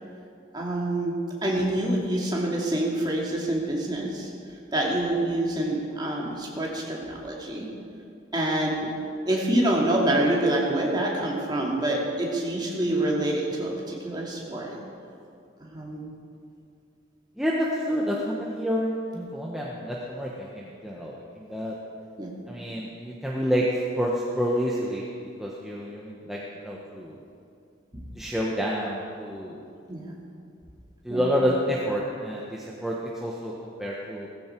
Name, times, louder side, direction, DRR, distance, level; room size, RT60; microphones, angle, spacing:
voice 1, 0.5-1.1 1.4-4.3 4.7-7.7 8.3-8.9 9.3-14.7 15.6-16.1 22.2-22.3 27.9-28.0 29.9-30.1 31.1-31.3, right 1 dB, 20° right, -3 dB, 2.4 m, -26 dB
voice 2, 17.4-21.7 22.5-23.6 24.0-25.1 25.4-27.2 28.1-29.6 31.0-34.3, equal, ahead, -4 dB, 1.1 m, -29 dB
17.0 x 15.0 x 4.6 m, 2.5 s
head